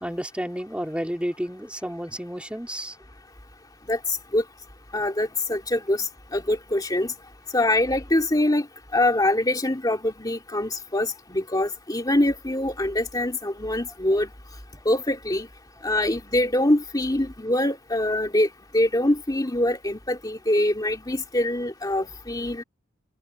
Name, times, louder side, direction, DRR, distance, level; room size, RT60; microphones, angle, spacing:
voice 1, 0.0-2.9, equal, 5° right, 3.1 m, -31 dB
voice 2, 4.9-7.1 7.5-8.7 8.9-14.3 14.8-15.5 15.8-18.5 18.7-22.6, left 1 dB, 20° left, 2.6 m, -24 dB
open air
head